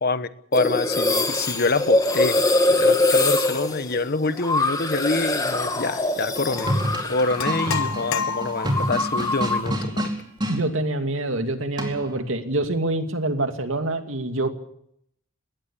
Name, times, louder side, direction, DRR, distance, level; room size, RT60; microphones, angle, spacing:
voice 1, 0.0-6.7 7.0-10.1, left 3 dB, 50° left, 13 dB, 1.2 m, -26 dB
sound 1, 0.5-7.9 8.2-9.7, left 2 dB, 20° left, 2.6 m, -23 dB
sound 2, 6.3-10.6 11.8-12.2, equal, 20° right, 4.5 m, -28 dB
sound 3, 6.6-6.7 7.4-8.9, left 6 dB, 85° left, 0.9 m, -29 dB
voice 2, 10.5-14.5, right 2 dB, 70° right, 7 dB, 2.5 m, -26 dB
20.5 x 17.5 x 8.4 m, 0.71 s
head